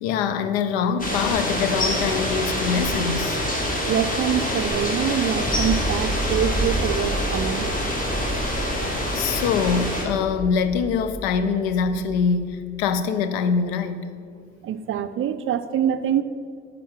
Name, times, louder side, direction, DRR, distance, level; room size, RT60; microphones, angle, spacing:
voice 1, 0.0-3.4 8.5-8.9 9.1-14.0, left 6 dB, 70° left, 11 dB, 0.6 m, -24 dB
sound 1, 1.0-10.0, left 1 dB, 25° left, 2.0 m, -26 dB
voice 2, 3.9-7.7 14.6-16.2, right 9 dB, 40° right, 11 dB, 0.5 m, -25 dB
sound 2, 5.4-13.0, right 2 dB, 10° left, 1.1 m, -31 dB
10.0 x 3.8 x 7.2 m, 2.1 s
figure-of-eight pair, 45°, 31 cm